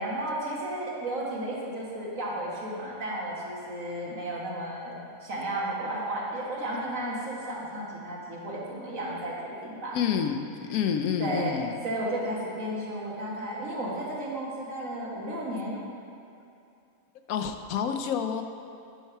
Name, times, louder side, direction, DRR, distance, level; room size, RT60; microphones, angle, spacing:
voice 1, 0.0-10.0 11.2-15.8, right 1 dB, 70° right, -5 dB, 1.9 m, -33 dB
voice 2, 9.9-11.8 13.6-13.7 17.3-18.4, left 7 dB, 85° left, 6 dB, 1.1 m, -28 dB
9.5 x 5.5 x 4.6 m, 2.6 s
omnidirectional pair, 1.5 m